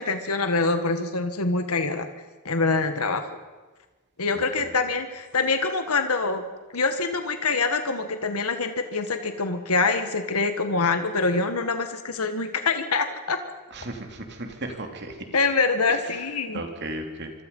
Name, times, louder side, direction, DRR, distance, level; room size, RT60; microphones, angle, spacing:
voice 1, 0.0-2.1 2.4-3.3 4.2-6.4 6.7-13.4 15.3-16.6, left 3 dB, 90° left, 7 dB, 1.7 m, -25 dB
voice 2, 13.7-15.1 15.9-16.0 16.5-17.3, right 2 dB, 50° right, 4 dB, 2.9 m, -35 dB
26.0 x 25.0 x 5.5 m, 1.2 s
head